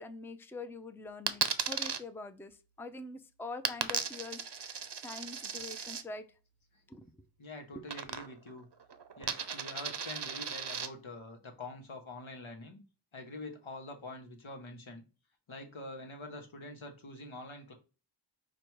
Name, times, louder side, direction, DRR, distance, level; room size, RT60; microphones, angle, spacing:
voice 1, 0.0-6.3 6.9-7.1 7.7-7.8, left 3 dB, 5° left, 9 dB, 0.4 m, -45 dB
Coin (dropping), 1.3-2.0 3.7-6.0 7.9-8.5 8.8-10.9, right 6 dB, 60° right, 0.6 m, -36 dB
voice 2, 7.4-8.7 9.2-12.8 13.1-15.0 15.5-17.7, left 2 dB, 80° left, 3 dB, 1.0 m, -45 dB
5.1 x 2.3 x 4.5 m, 0.33 s
wide cardioid pair, 40°, 47 cm